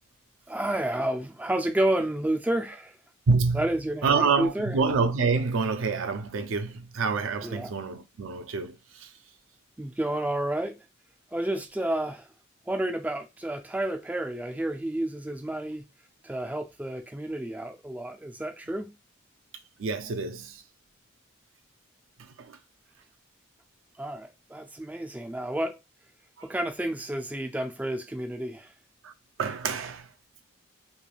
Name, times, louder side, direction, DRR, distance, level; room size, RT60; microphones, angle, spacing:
voice 1, 0.5-3.0 3.5-4.8 7.4-7.7 9.8-10.8 11.3-12.3 12.7-15.9 16.2-18.9 24.0-25.8 26.4-28.7, right 1 dB, 5° right, 0.3 m, -30 dB
voice 2, 3.3-3.6 4.0-9.1 19.8-20.6 22.2-22.6 26.4-26.5 29.0-29.1 29.4-30.1, right 4 dB, 65° right, 0.4 m, -27 dB
3.2 x 2.2 x 2.3 m
head